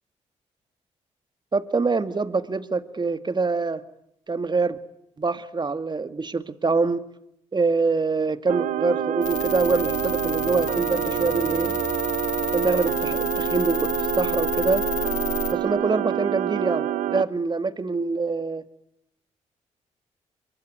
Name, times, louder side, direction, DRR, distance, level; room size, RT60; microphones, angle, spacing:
voice 1, 1.5-3.8 4.3-4.8 5.2-7.1 7.5-11.8 12.5-14.9 15.5-18.6, right 4 dB, 35° right, 11 dB, 1.9 m, -25 dB
sound 1, 8.5-17.2, right 11 dB, 80° right, 1.0 m, -27 dB
sound 2, 9.2-15.5, left 9 dB, 70° left, 2.9 m, -31 dB
23.5 x 23.5 x 9.4 m, 0.76 s
supercardioid pair, 50°, 13 cm